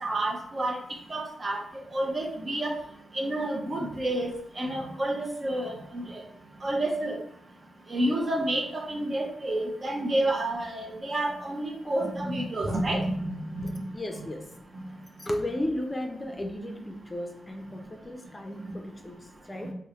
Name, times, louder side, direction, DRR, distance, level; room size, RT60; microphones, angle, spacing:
voice 1, 0.0-0.8 1.1-1.6 1.9-2.7 3.1-4.3 4.6-6.2 6.6-7.2 7.9-13.6 18.6-18.7 19.6-19.7, right 1 dB, 45° right, 1 dB, 0.6 m, -29 dB
voice 2, 13.6-14.5 15.2-19.7, left 1 dB, 25° left, 4 dB, 0.5 m, -35 dB
2.6 x 2.0 x 3.0 m, 0.68 s
supercardioid pair, 40°, 0 cm